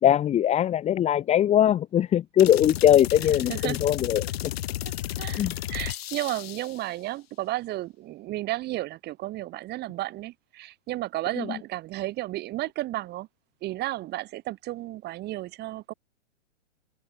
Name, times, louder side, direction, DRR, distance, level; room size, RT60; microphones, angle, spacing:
voice 1, 0.0-4.3 5.4-5.5, left 11 dB, 20° left, 2.0 m, -21 dB
sound 1, 2.4-6.8, left 13 dB, 55° left, 4.4 m, -33 dB
voice 2, 5.2-13.3 13.6-15.9, right 16 dB, 30° right, 6.4 m, -33 dB
open air
hypercardioid pair, 135°, 36 cm